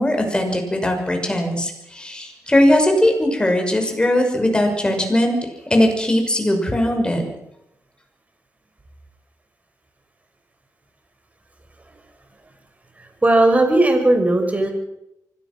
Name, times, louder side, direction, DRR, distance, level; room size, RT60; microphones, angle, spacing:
voice 1, 0.0-5.4 5.7-7.2, left 1 dB, 15° left, 4 dB, 6.1 m, -19 dB
voice 2, 13.0-14.7, right 2 dB, 25° right, 5 dB, 5.9 m, -17 dB
24.5 x 18.0 x 6.2 m, 0.85 s
cardioid pair, 95°, 6 cm